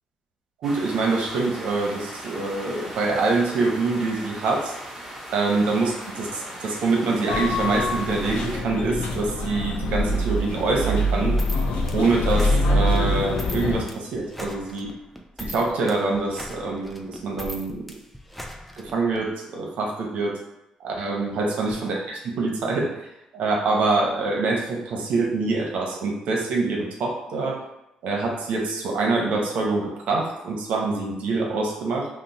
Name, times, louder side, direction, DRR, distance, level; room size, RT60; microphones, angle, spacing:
sound 1, 0.6-8.6, right 1 dB, 15° right, 1.0 m, -38 dB
voice 1, 0.6-4.7 5.3-11.4 11.9-14.9 15.4-17.8 18.8-20.4 20.8-23.1 23.3-27.6 28.0-32.1, right 3 dB, 80° right, 0 dB, 0.7 m, -25 dB
sound 2, 7.3-13.8, left 1 dB, 85° left, 0.5 m, -24 dB
sound 3, 11.4-19.2, left 1 dB, 5° left, 0.4 m, -39 dB
2.9 x 2.0 x 3.9 m, 0.89 s
cardioid pair, 90°, 2 cm